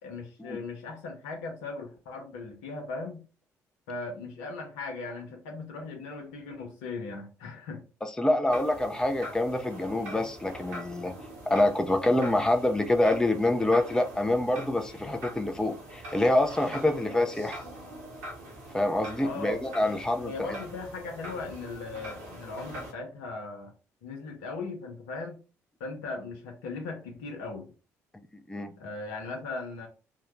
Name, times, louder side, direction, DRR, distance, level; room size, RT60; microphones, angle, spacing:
voice 1, 0.0-3.2 3.9-7.8 19.2-19.6 20.2-23.7 24.0-25.4 25.8-27.7 28.8-29.9, left 3 dB, 70° left, 0.8 m, -38 dB
voice 2, 8.2-11.1 11.5-17.6 18.7-20.5 28.5-28.7, left 1 dB, 10° left, 0.5 m, -26 dB
sound 1, 8.5-22.9, right 1 dB, 80° right, 1.1 m, -43 dB
3.7 x 2.2 x 3.1 m
figure-of-eight pair, 50°, 8 cm